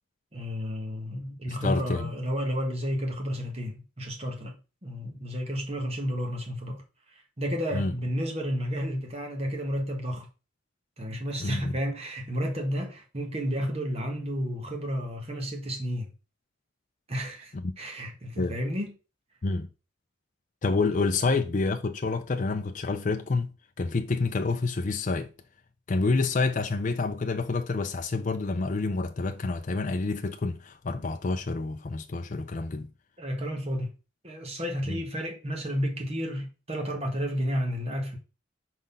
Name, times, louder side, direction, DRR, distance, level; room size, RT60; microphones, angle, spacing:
voice 1, 0.3-4.5 4.8-6.8 7.1-10.3 11.0-16.1 17.1-18.9 33.2-33.9 34.2-38.2, equal, 30° right, 1.5 m, -31 dB
voice 2, 1.5-2.1 7.7-7.9 11.4-11.8 17.5-17.7 18.4-18.6 19.4-19.7 20.6-25.3 25.9-32.9 34.9-35.0, left 3 dB, 40° left, 0.5 m, -28 dB
5.1 x 4.1 x 5.5 m
head